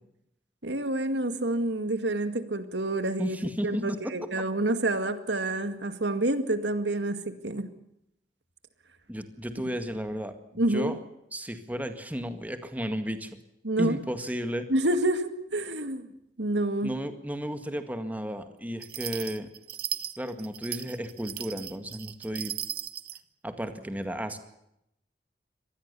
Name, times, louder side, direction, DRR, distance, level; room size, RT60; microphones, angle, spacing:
voice 1, 0.6-3.4 3.6-7.7 10.6-11.0 13.6-14.0 14.7-16.0 16.4-16.9, right 1 dB, 80° right, 10 dB, 2.2 m, -28 dB
voice 2, 3.2-4.1 9.1-10.3 10.7-11.0 11.3-13.3 13.8-14.7 16.8-19.5 20.2-22.5 23.4-24.4, equal, 10° right, 8 dB, 1.9 m, -33 dB
sound 1, 18.8-23.2, right 11 dB, 60° right, 1.1 m, -37 dB
25.0 x 19.5 x 7.0 m, 0.79 s
head